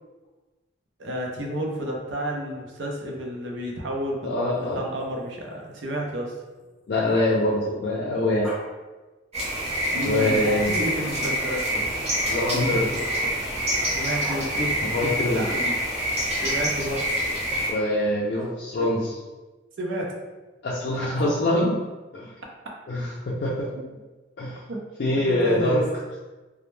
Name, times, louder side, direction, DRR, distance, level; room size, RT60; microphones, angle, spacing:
voice 1, 1.0-6.3 9.8-11.9 12.5-13.0 13.8-15.8 16.4-17.3 19.8-20.1 24.7-24.8 25.2-25.9, equal, 90° right, -1 dB, 0.5 m, -31 dB
voice 2, 4.2-4.8 6.9-8.5 10.0-10.8 12.3-12.9 14.8-15.5 17.7-19.1 20.6-21.8 22.1-22.3 22.9-23.7 24.4-24.6 25.0-25.8, left 1 dB, 60° left, -6 dB, 0.4 m, -24 dB
Growling, 4.3-7.7 8.4-8.6 9.9-11.0 12.4-14.5 16.3-17.0 18.3-18.5 20.8-21.7, right 1 dB, ahead, 0.6 m, -44 dB
sound 1, 9.3-17.7, equal, 35° right, 0.7 m, -27 dB
2.1 x 2.1 x 3.0 m, 1.2 s
head